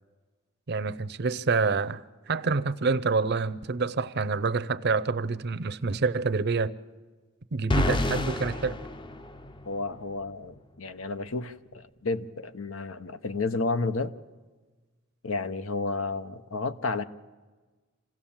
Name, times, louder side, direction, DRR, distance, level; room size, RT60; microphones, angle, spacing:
voice 1, 0.7-6.7 7.5-8.8, right 4 dB, 55° right, 0.6 m, -27 dB
sound 1, 7.7-9.8, left 1 dB, 25° left, 0.6 m, -28 dB
voice 2, 9.7-14.1 15.2-17.0, left 3 dB, 80° left, 0.9 m, -31 dB
26.5 x 16.5 x 7.3 m
head